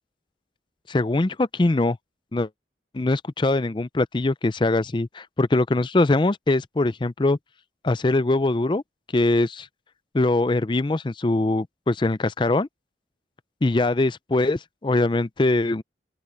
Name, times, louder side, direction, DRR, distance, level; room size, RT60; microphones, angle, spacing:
voice 1, 0.9-2.0 2.3-2.5 2.9-7.4 7.8-8.8 9.1-9.7 10.1-12.7 13.6-15.8, left 2 dB, 25° left, 0.4 m, -22 dB
open air
head